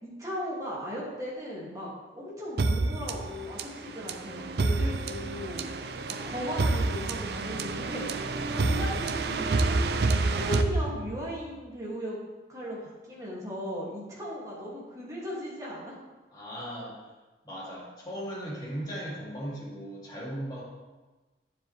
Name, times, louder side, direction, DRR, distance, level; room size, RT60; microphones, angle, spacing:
voice 1, 0.0-5.7 6.1-8.1 8.5-9.7 10.3-12.2 12.5-15.9, equal, 20° right, -6 dB, 2.1 m, -37 dB
sound 1, 2.6-11.4, right 3 dB, 60° right, 0.5 m, -29 dB
voice 2, 16.3-17.0 17.4-20.6, equal, 20° left, -6 dB, 2.4 m, -37 dB
9.8 x 7.5 x 3.2 m, 1.2 s
head